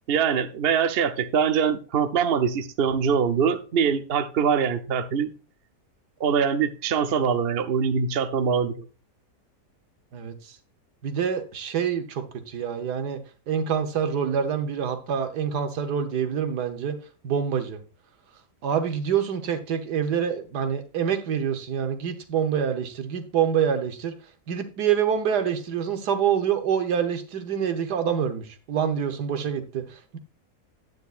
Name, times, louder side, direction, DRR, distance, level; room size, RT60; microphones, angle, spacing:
voice 1, 0.1-5.3 6.2-8.8, right 6 dB, 50° right, 0.7 m, -23 dB
voice 2, 10.1-10.6 11.0-13.2 13.5-17.0 17.2-17.8 18.6-24.1 24.5-30.2, right 8 dB, 75° right, 1.6 m, -26 dB
9.5 x 9.4 x 2.5 m
omnidirectional pair, 1.8 m